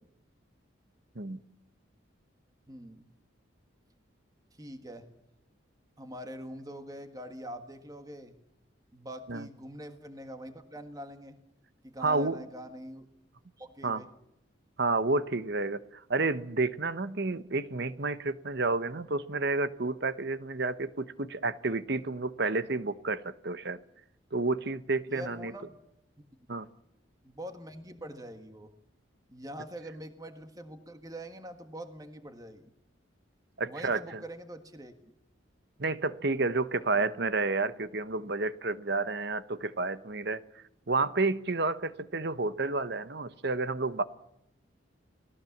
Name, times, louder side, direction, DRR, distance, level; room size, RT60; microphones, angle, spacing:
voice 1, 2.7-3.1 4.5-5.1 6.0-8.4 8.9-11.4 11.8-13.1 13.6-14.1 25.1-25.8 27.2-28.7 29.3-32.7 33.7-35.1 36.8-37.1, right 1 dB, 20° right, 7 dB, 1.6 m, -44 dB
voice 2, 12.0-12.4 13.8-14.0 14.8-23.8 24.3-25.5 26.5-26.7 33.6-34.2 35.8-40.4 40.9-44.0, right 3 dB, 55° right, 13 dB, 1.0 m, -30 dB
30.0 x 18.5 x 7.3 m, 0.84 s
head